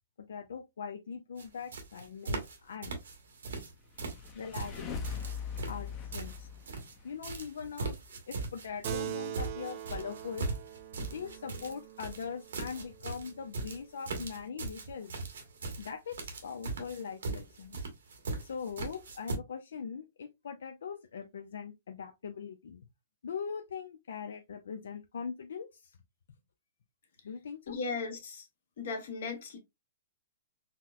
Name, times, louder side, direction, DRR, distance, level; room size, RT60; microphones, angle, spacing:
voice 1, 0.3-3.0 4.3-5.3 5.6-6.5 7.0-8.0 8.3-10.5 11.0-15.1 15.8-17.8 18.4-22.9 23.2-25.9 27.2-27.8, left 6 dB, 80° left, 0.4 m, -41 dB
sound 1, 1.4-1.5 1.7-2.6 2.8-3.7 4.0-6.9 7.2-19.4, right 3 dB, 90° right, 1.1 m, -39 dB
sound 2, 3.8-7.4, left 6 dB, 20° left, 0.6 m, -41 dB
Keyboard (musical), 8.8-13.7, right 11 dB, 40° right, 0.4 m, -43 dB
voice 2, 27.7-28.4 28.8-29.6, left 4 dB, 65° left, 1.2 m, -37 dB
4.1 x 2.1 x 2.3 m
hypercardioid pair, 160°, 0 cm